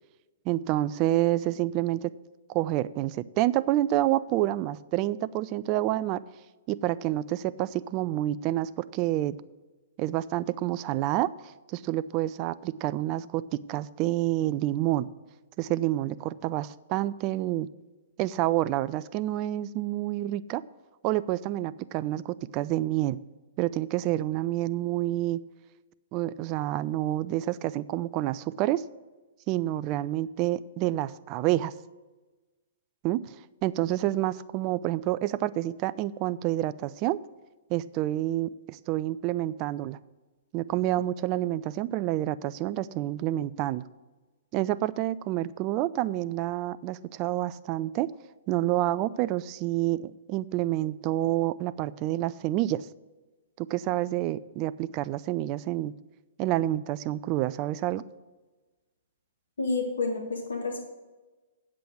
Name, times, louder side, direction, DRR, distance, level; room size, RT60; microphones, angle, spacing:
voice 1, 0.5-2.1 2.5-6.2 6.7-9.4 10.0-11.3 11.7-15.1 15.6-17.7 18.2-20.6 21.0-23.2 23.6-25.4 26.1-28.8 29.5-31.7 33.0-33.4 33.6-37.2 37.7-40.0 40.5-43.8 44.5-48.1 48.5-52.9 53.6-55.9 56.4-58.0, right 15 dB, 35° right, 17 dB, 0.4 m, -28 dB
voice 2, 59.6-60.8, left 3 dB, 75° left, 3 dB, 1.6 m, -29 dB
8.5 x 7.6 x 6.1 m, 1.2 s
figure-of-eight pair, 115°, 0 cm